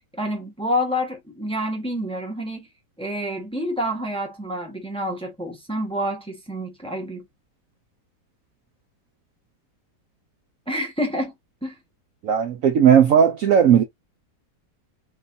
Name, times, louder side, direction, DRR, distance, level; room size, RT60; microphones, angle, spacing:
voice 1, 0.1-2.7 3.0-7.3 10.7-11.3 11.6-11.8, equal, 5° left, 1.1 m, -28 dB
voice 2, 12.2-13.8, right 8 dB, 65° right, 0.9 m, -16 dB
3.9 x 3.8 x 2.7 m
omnidirectional pair, 1.9 m